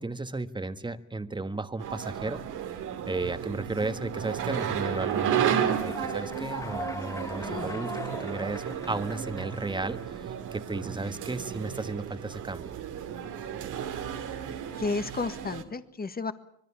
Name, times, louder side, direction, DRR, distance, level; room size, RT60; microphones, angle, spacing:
voice 1, 0.0-2.4 3.1-7.9 8.2-12.7, right 2 dB, 15° right, 10 dB, 1.6 m, -34 dB
sound 1, 1.8-15.6, right 9 dB, 85° right, 2.6 m, -33 dB
Human voice / Clapping / Cheering, 4.3-10.2, left 2 dB, 10° left, 1.0 m, -42 dB
voice 2, 7.4-7.9 14.8-16.3, left 3 dB, 30° left, 10 dB, 1.7 m, -32 dB
25.5 x 21.5 x 7.2 m, 0.72 s
cardioid pair, 90°, 30 cm